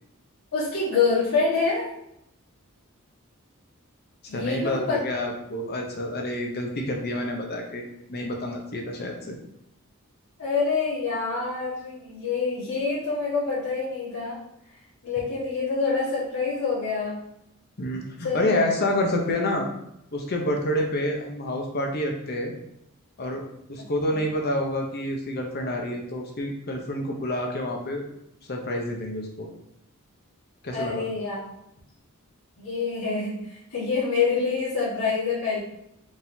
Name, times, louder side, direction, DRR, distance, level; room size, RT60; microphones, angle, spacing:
voice 1, 0.5-1.9 4.3-5.0 10.4-14.4 15.0-17.2 18.2-18.7 24.1-24.2 30.7-31.4 32.6-35.6, left 4 dB, 75° left, -11 dB, 1.7 m, -26 dB
voice 2, 4.3-7.8 8.1-9.4 17.8-19.6 20.1-22.5 23.2-23.4 23.7-28.1 28.4-29.5 30.6-31.0, left 1 dB, 45° left, 1 dB, 0.8 m, -28 dB
5.0 x 3.6 x 2.7 m, 0.80 s
head